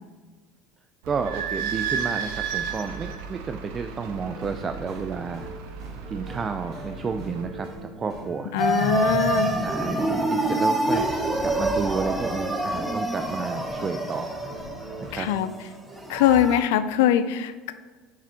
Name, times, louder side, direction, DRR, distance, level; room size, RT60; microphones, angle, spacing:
voice 1, 1.0-5.5 6.1-8.5 9.6-11.1 11.4-14.4 15.0-15.3, right 5 dB, 35° right, 7 dB, 0.3 m, -31 dB
Idling / Squeak, 1.0-7.4, right 7 dB, 75° right, 0.6 m, -33 dB
sound 1, 4.0-15.4, right 1 dB, 50° right, 1.8 m, -42 dB
voice 2, 8.5-9.5 15.1-15.5 16.1-17.7, left 10 dB, 80° left, 12 dB, 0.3 m, -22 dB
sound 2, 8.6-16.6, right 2 dB, 5° right, 0.9 m, -26 dB
7.0 x 4.9 x 2.8 m, 1.4 s
hypercardioid pair, 85°, 0 cm